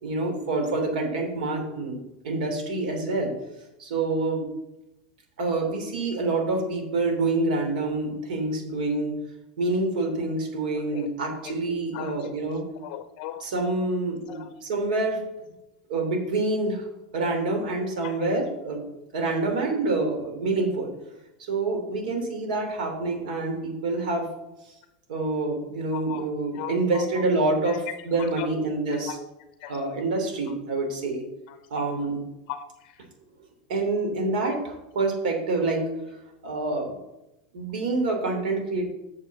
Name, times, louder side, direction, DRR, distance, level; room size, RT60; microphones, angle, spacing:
voice 1, 0.0-2.0 2.2-3.3 3.8-4.5 5.4-9.1 9.6-12.6 13.4-15.2 15.9-16.9 17.1-18.8 19.1-20.9 21.4-24.3 25.1-29.1 29.7-31.2 31.7-32.2 33.7-35.8 36.4-36.9 37.5-38.9, right 2 dB, 85° right, 2 dB, 3.0 m, -27 dB
voice 2, 10.7-11.1 11.4-11.5 11.9-12.3 12.8-13.5 14.3-14.5 18.0-18.3 25.9-26.3 26.5-27.2 27.6-28.5 28.9-29.2 29.6-29.8 31.5-31.6 32.5-33.1 34.4-34.6, left 11 dB, 45° left, 9 dB, 0.7 m, -38 dB
6.6 x 5.9 x 7.4 m, 0.92 s
supercardioid pair, 155°, 4 cm